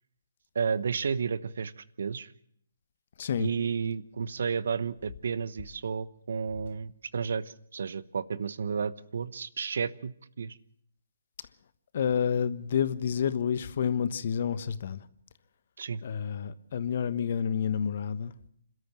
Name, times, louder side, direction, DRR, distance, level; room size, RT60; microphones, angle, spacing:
voice 1, 0.5-2.3 3.4-10.6 15.8-16.0, right 6 dB, 65° right, 0.9 m, -32 dB
voice 2, 11.9-15.0 16.0-18.3, left 7 dB, 55° left, 1.3 m, -29 dB
27.5 x 13.0 x 7.6 m
hypercardioid pair, 140°, 0 cm